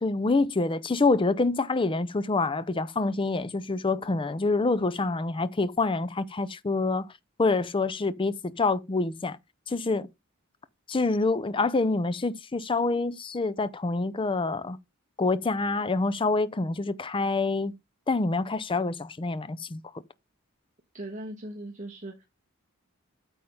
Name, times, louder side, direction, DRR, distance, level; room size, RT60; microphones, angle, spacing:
voice 1, 0.0-7.1 7.4-9.4 9.7-10.1 10.9-14.8 15.2-17.8 18.1-19.8, left 3 dB, 25° left, 0.5 m, -26 dB
voice 2, 20.9-22.2, right 1 dB, 35° right, 1.4 m, -39 dB
8.7 x 3.6 x 5.5 m
head